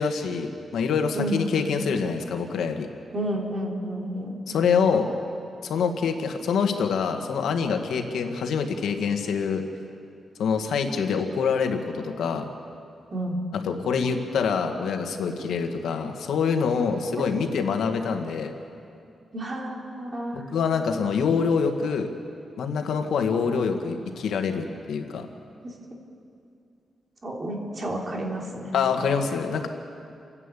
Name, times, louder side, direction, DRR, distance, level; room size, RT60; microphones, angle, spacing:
voice 1, 0.0-2.9 4.5-5.1 5.6-9.6 10.4-12.5 13.5-18.5 20.3-22.1 22.6-25.3 28.7-29.7, left 6 dB, 85° left, 5 dB, 1.7 m, -25 dB
voice 2, 3.1-4.4 13.1-13.4 19.3-20.4 27.2-28.7, right 1 dB, 30° right, -1 dB, 3.2 m, -30 dB
29.0 x 11.0 x 8.4 m, 2.5 s
wide cardioid pair, 145°, 0 cm